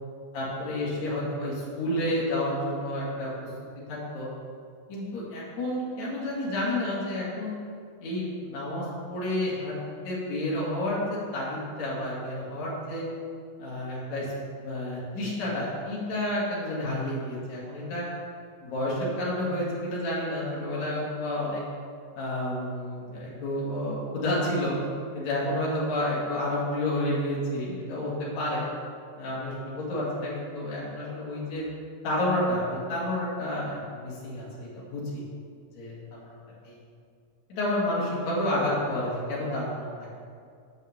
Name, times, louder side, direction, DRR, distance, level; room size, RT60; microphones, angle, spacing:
voice 1, 0.3-3.5 3.9-4.3 4.9-7.6 8.0-9.7 10.0-13.0 13.6-14.3 14.6-18.0 18.6-21.6 22.1-24.8 25.1-28.7 29.2-31.6 32.0-35.2 35.7-36.4 36.6-36.8 37.5-39.9, left 1 dB, 55° left, -7 dB, 3.4 m, -30 dB
8.2 x 5.5 x 7.3 m, 2.2 s
omnidirectional pair, 4.2 m